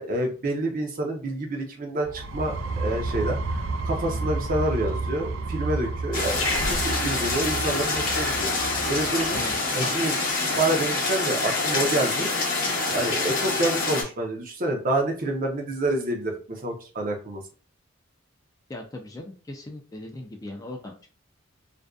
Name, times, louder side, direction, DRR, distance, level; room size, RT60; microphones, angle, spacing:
voice 1, 0.0-8.5 8.9-9.4 9.7-10.1 10.6-12.3 12.9-17.4, right 1 dB, 45° right, 2 dB, 0.6 m, -28 dB
sound 1, 2.0-9.7, right 3 dB, 90° right, 0.3 m, -31 dB
sound 2, 6.1-14.0, left 3 dB, 45° left, 0.7 m, -26 dB
Growling, 6.3-10.9, left 2 dB, 80° left, 0.7 m, -36 dB
voice 2, 18.7-21.1, left 1 dB, 20° left, 1 dB, 0.4 m, -39 dB
2.5 x 2.2 x 2.2 m, 0.36 s
head